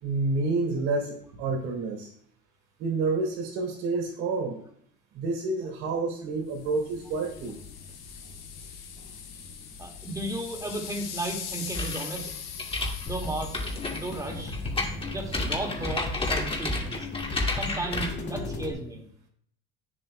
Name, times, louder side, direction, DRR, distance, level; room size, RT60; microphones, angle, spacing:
voice 1, 0.0-2.1 2.8-4.6 5.1-7.6, right 3 dB, 75° right, 1 dB, 3.1 m, -29 dB
sound 1, 6.5-16.7, left 7 dB, 85° left, 1.8 m, -42 dB
voice 2, 9.8-12.3 13.1-14.6 15.1-17.1 17.5-19.0, right 2 dB, 10° right, 1 dB, 2.0 m, -34 dB
sound 2, 11.7-18.1, left 2 dB, 20° left, 2.2 m, -31 dB
sound 3, 13.1-18.7, left 2 dB, 40° left, 2.0 m, -37 dB
9.6 x 7.4 x 2.2 m, 0.67 s
supercardioid pair, 85°, 29 cm